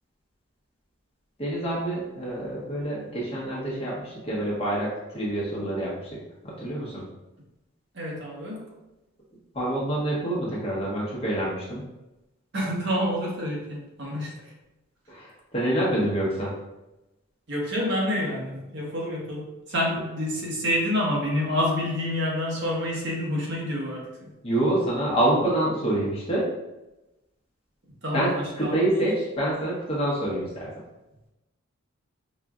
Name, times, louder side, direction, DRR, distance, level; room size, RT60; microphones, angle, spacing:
voice 1, 1.4-6.2 6.4-7.0 9.5-11.8 15.1-16.5 24.4-26.5 28.1-28.3 28.6-30.7, right 1 dB, 30° left, -5 dB, 1.0 m, -26 dB
voice 2, 7.9-8.6 12.5-14.5 17.5-24.3 28.0-29.0, left 1 dB, 55° right, -3 dB, 1.0 m, -28 dB
5.1 x 2.5 x 2.3 m, 0.98 s
head